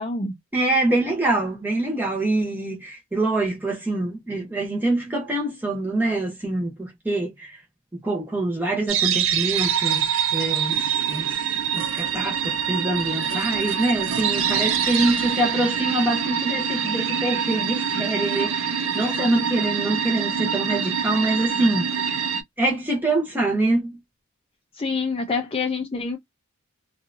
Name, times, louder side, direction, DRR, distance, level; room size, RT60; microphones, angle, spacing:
voice 1, 0.0-0.3 24.7-26.2, left 4 dB, 25° left, 0.5 m, -26 dB
voice 2, 0.5-7.6 7.9-11.3 11.7-22.2 22.6-23.9, right 2 dB, 10° right, 0.9 m, -25 dB
sound 1, 8.9-22.4, right 7 dB, 65° right, 0.6 m, -25 dB
2.7 x 2.4 x 2.5 m
head